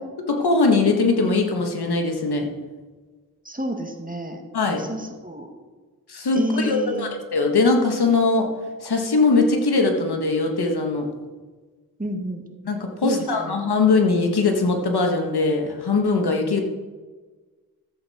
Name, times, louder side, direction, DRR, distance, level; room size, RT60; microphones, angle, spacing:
voice 1, 0.3-2.4 4.5-4.8 6.1-8.5 8.8-11.1 12.6-16.6, left 3 dB, 85° left, 3 dB, 1.6 m, -21 dB
voice 2, 3.4-4.4 4.7-5.5 6.3-7.1 12.0-12.4 13.0-13.6, right 1 dB, 20° right, 3 dB, 2.0 m, -30 dB
14.0 x 8.3 x 4.3 m, 1.3 s
cardioid pair, 40°, 38 cm